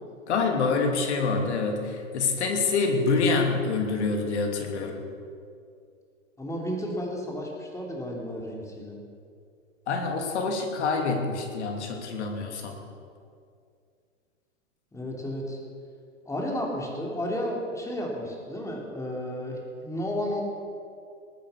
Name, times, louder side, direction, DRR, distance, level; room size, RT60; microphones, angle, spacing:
voice 1, 0.3-5.0 9.9-12.8, left 4 dB, 60° left, 3 dB, 3.0 m, -26 dB
voice 2, 6.4-9.0 14.9-15.6 16.2-20.4, equal, 10° left, -1 dB, 3.1 m, -32 dB
20.0 x 8.9 x 7.0 m, 2.3 s
hypercardioid pair, 115°, 39 cm